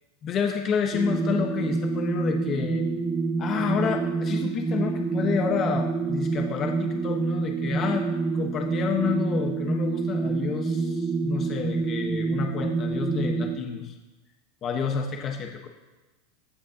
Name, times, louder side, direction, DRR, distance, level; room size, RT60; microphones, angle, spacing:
voice 1, 0.2-2.9 3.4-8.1 8.3-13.9 14.6-15.7, left 6 dB, 40° left, 3 dB, 1.2 m, -29 dB
sound 1, 0.9-13.6, right 4 dB, 10° right, 1.0 m, -27 dB
15.5 x 9.3 x 2.9 m, 1.2 s
hypercardioid pair, 110°, 0 cm